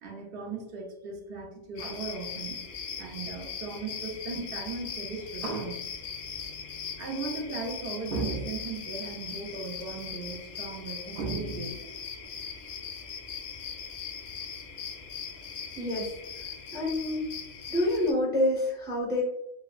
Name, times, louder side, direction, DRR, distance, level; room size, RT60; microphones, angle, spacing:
voice 1, 0.0-2.6 3.0-5.9 7.0-12.0, right 4 dB, 55° right, 1 dB, 0.9 m, -36 dB
sound 1, 1.7-18.1, left 6 dB, 65° left, 0.7 m, -39 dB
voice 2, 15.8-16.1 16.7-17.2 17.7-19.2, left 1 dB, 10° right, -2 dB, 0.7 m, -27 dB
4.3 x 2.0 x 2.3 m, 0.82 s
omnidirectional pair, 1.3 m